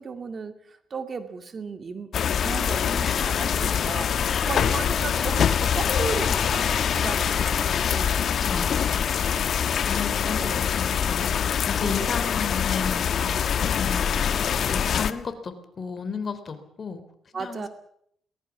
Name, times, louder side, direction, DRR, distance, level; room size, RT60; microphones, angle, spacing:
voice 1, 0.0-8.2 8.4-8.7 10.2-10.6 11.8-12.2 17.3-17.7, right 5 dB, 40° right, 9 dB, 2.2 m, -35 dB
sound 1, 2.1-15.1, left 8 dB, 60° left, 1.3 m, -24 dB
voice 2, 2.9-3.7 4.3-4.6 8.4-9.1 9.9-17.0 17.3-17.7, left 5 dB, 40° left, 9 dB, 3.6 m, -34 dB
22.0 x 19.5 x 7.3 m, 0.71 s
cardioid pair, 90°, 0 cm